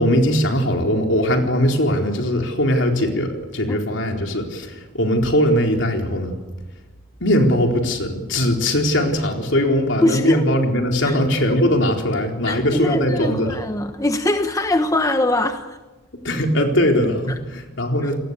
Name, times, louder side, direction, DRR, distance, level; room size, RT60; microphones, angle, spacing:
voice 1, 0.0-6.4 7.2-13.6 16.2-18.2, equal, 70° left, 3 dB, 4.2 m, -20 dB
voice 2, 10.0-10.4 11.0-11.2 12.5-15.8, left 1 dB, 15° left, 7 dB, 1.2 m, -21 dB
29.0 x 20.0 x 8.3 m, 1.1 s
head